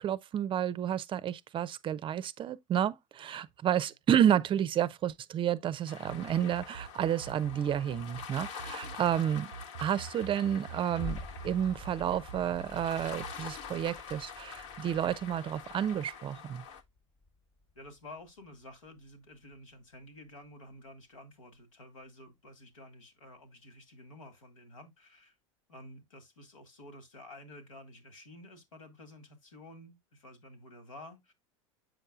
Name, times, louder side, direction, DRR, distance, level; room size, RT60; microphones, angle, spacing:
voice 1, 0.0-9.5 9.8-16.6, right 10 dB, 30° right, 0.5 m, -30 dB
sound 1, 5.9-16.8, left 7 dB, 65° left, 1.3 m, -46 dB
sound 2, 6.0-13.3, right 6 dB, 75° right, 0.5 m, -44 dB
sound 3, 11.0-19.5 20.0-20.1, left 3 dB, 35° left, 1.1 m, -49 dB
voice 2, 17.8-25.4 25.7-31.3, left 1 dB, 80° left, 2.0 m, -51 dB
7.8 x 6.6 x 2.4 m
hypercardioid pair, 85°, 17 cm